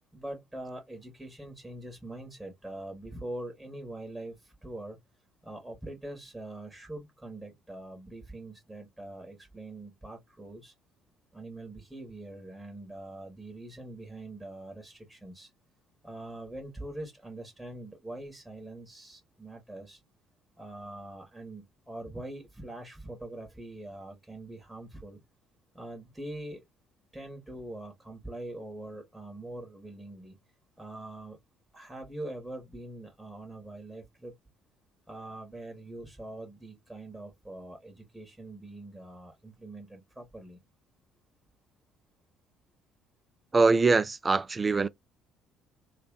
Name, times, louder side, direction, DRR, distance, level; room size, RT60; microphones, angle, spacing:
voice 1, 0.1-5.0 5.4-10.7 11.3-15.5 16.0-20.0 20.6-25.2 25.7-26.6 27.1-30.4 30.8-31.4 31.7-34.3 35.1-40.6, right 1 dB, 5° right, 1.6 m, -43 dB
voice 2, 43.5-44.9, right 3 dB, 25° right, 0.4 m, -23 dB
3.3 x 2.4 x 3.7 m
figure-of-eight pair, 50°, 0 cm